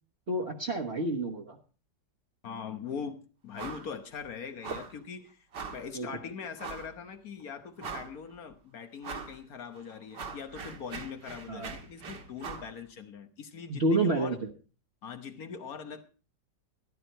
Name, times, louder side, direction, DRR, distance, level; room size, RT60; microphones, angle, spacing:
voice 1, 0.3-1.6 5.9-6.1 11.5-11.7 13.7-14.5, right 2 dB, 40° right, 1.4 m, -29 dB
voice 2, 2.4-5.4 5.7-14.4 15.0-16.0, left 6 dB, 55° left, 1.5 m, -41 dB
sound 1, 3.6-3.9 4.2-4.3 4.6-5.0 5.5-5.9 6.6-6.9 7.4-7.5 7.8-8.3 9.0-9.4 9.8-12.7, right 5 dB, 75° right, 2.1 m, -41 dB
13.5 x 11.5 x 4.4 m
omnidirectional pair, 1.9 m